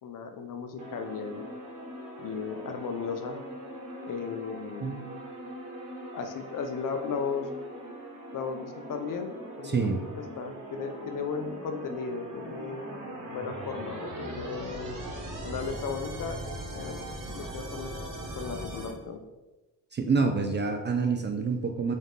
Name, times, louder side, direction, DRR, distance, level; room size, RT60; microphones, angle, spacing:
voice 1, 0.0-1.5 2.2-3.4 4.1-5.0 6.1-7.5 8.3-10.1 10.4-12.8 13.3-14.9 15.4-16.4 16.7-17.0 17.3-18.0 18.4-19.2, left 5 dB, 50° left, 6 dB, 0.6 m, -35 dB
sound 1, 0.8-18.9, right 1 dB, 50° right, 1.2 m, -40 dB
voice 2, 9.6-10.0 19.9-21.9, right 4 dB, 30° right, 5 dB, 0.3 m, -27 dB
4.1 x 2.4 x 3.5 m, 1.1 s
cardioid pair, 70°, 40 cm